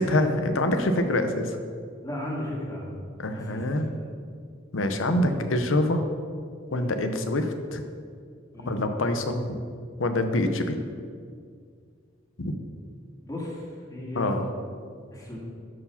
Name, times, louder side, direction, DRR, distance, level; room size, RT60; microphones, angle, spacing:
voice 1, 0.0-1.6 3.2-3.9 4.7-6.0 6.7-7.8 8.6-9.6 10.0-10.8 12.4-12.6 14.2-14.4, left 1 dB, 85° left, 7 dB, 0.8 m, -25 dB
voice 2, 2.0-2.9 3.3-3.7 5.0-5.3 6.7-6.9 8.5-8.8 13.2-14.3 15.1-15.4, left 1 dB, 20° left, -4 dB, 1.9 m, -35 dB
12.5 x 4.8 x 5.7 m, 2.2 s
head